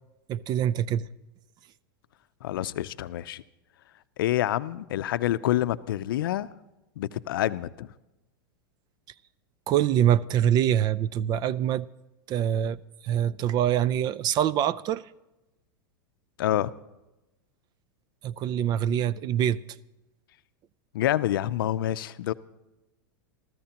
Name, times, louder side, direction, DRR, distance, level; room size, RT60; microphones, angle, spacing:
voice 1, 0.3-1.1 9.7-11.9 12.3-12.8 13.0-15.1 18.2-19.6, right 10 dB, 35° right, 0.5 m, -24 dB
voice 2, 2.4-3.4 4.2-6.5 7.0-7.9 16.4-16.7 20.9-22.3, left 13 dB, 75° left, 0.5 m, -27 dB
28.0 x 14.0 x 2.9 m
hypercardioid pair, 115°, 12 cm